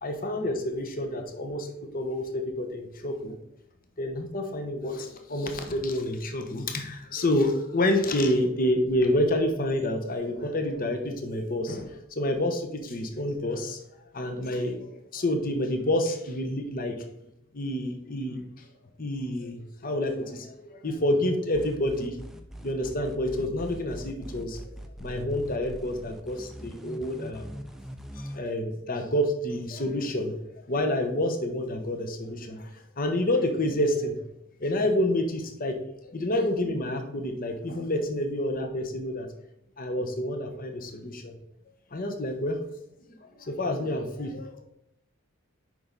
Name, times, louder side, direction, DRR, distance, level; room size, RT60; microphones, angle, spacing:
voice 1, 0.0-3.4 4.0-13.8 14.1-16.9 17.5-18.7 19.0-22.2 22.6-24.7 25.0-27.5 28.1-34.2 34.6-35.8 36.1-39.3 39.8-41.3 41.9-42.6 43.2-44.6, left 1 dB, 40° left, 5 dB, 0.9 m, -28 dB
sound 1, 21.5-28.4, equal, ahead, 0.5 m, -41 dB
7.6 x 5.5 x 3.9 m, 0.80 s
head